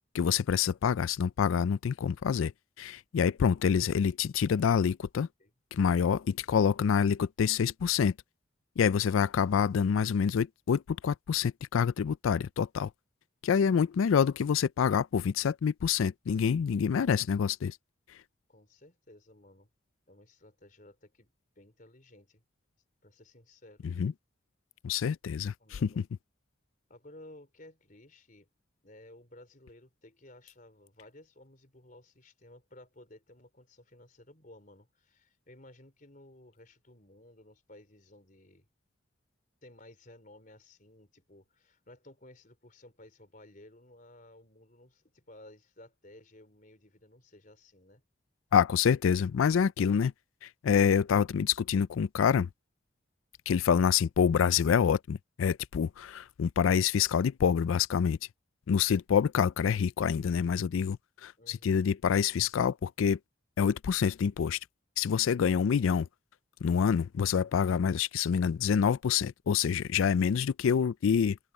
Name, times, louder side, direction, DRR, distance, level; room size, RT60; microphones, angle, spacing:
voice 1, 0.1-2.5 2.8-5.3 5.7-8.1 8.8-12.9 13.4-17.8 23.8-24.1 24.8-25.5 25.8-26.0 48.5-50.1 50.4-52.5 53.5-58.2 58.7-61.0 61.2-63.2 63.6-64.6 65.0-66.1 66.6-71.4, left 7 dB, 85° left, 0.4 m, -27 dB
voice 2, 18.5-19.7 20.1-22.4 23.0-23.9 25.6-26.0 26.9-28.5 28.8-38.7 39.6-48.0 61.4-61.8, left 1 dB, 40° left, 4.5 m, -55 dB
head